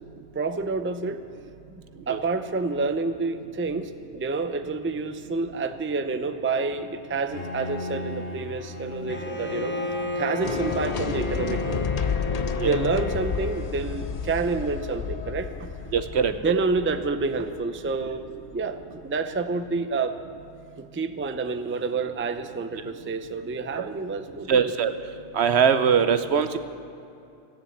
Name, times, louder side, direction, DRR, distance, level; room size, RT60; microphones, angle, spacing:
voice 1, 0.3-1.2 2.1-9.7 10.2-11.8 12.4-15.7 16.4-18.2 18.5-20.2 20.8-24.7, right 4 dB, 15° right, 9 dB, 0.4 m, -28 dB
Bowed string instrument, 7.3-12.1, left 2 dB, 75° left, 1.7 m, -37 dB
Bowed string instrument 2, 9.1-13.8, left 1 dB, 10° left, 1.1 m, -33 dB
sound 1, 10.4-18.5, left 7 dB, 50° left, 0.5 m, -31 dB
voice 2, 15.9-16.3 23.8-23.9 24.5-24.9 25.3-26.6, right 7 dB, 75° right, 10 dB, 1.0 m, -21 dB
16.0 x 10.5 x 8.0 m, 2.7 s
omnidirectional pair, 1.1 m